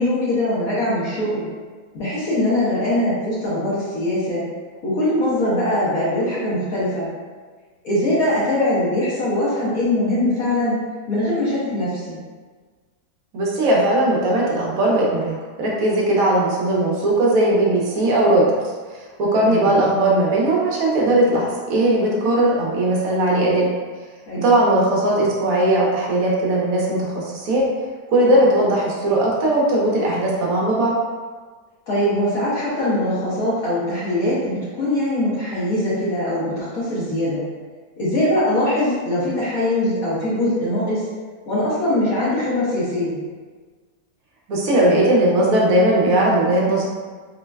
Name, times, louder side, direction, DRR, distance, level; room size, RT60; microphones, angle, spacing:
voice 1, 0.0-1.5 1.9-4.4 4.8-7.1 7.8-10.7 11.1-12.2 19.4-19.8 24.3-24.5 31.9-37.4 38.0-41.1 41.5-43.2, left 1 dB, 65° left, -9 dB, 1.2 m, -22 dB
voice 2, 13.3-18.5 19.2-23.7 24.3-27.7 28.1-30.9 44.5-46.8, right 1 dB, 70° right, -3 dB, 0.9 m, -18 dB
3.8 x 2.1 x 2.2 m, 1.5 s
omnidirectional pair, 1.8 m